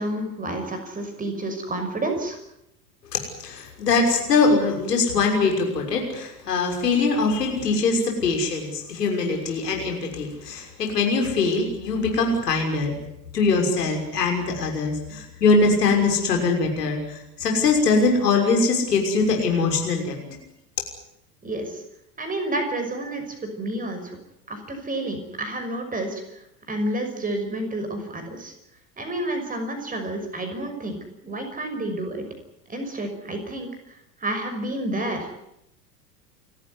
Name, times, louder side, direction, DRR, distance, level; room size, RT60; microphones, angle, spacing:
voice 1, 0.0-2.4 21.4-21.8 22.2-24.2 24.5-26.2 26.7-28.5 29.0-31.0 31.2-32.2 32.7-33.7 34.2-35.3, right 1 dB, 15° right, 6 dB, 6.0 m, -29 dB
voice 2, 3.1-12.9 13.3-20.4, left 4 dB, 70° left, 2 dB, 6.4 m, -22 dB
29.5 x 14.5 x 9.8 m, 0.82 s
figure-of-eight pair, 80°, 50 cm